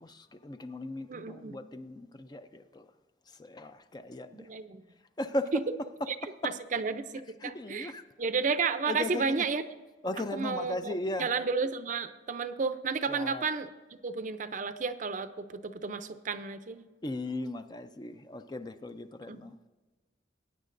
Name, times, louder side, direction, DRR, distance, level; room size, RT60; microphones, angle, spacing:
voice 1, 0.0-2.9 3.3-4.5 5.2-5.5 6.4-6.5 7.4-8.0 8.9-9.5 10.0-11.3 13.1-13.4 17.0-19.7, left 2 dB, 20° left, 10 dB, 0.4 m, -37 dB
voice 2, 1.1-1.6 4.3-4.8 6.1-6.2 6.4-7.9 8.2-9.6 10.3-13.7 14.0-16.9 19.3-19.5, right 5 dB, 45° right, 11 dB, 0.5 m, -32 dB
20.0 x 9.3 x 2.6 m, 1.2 s
head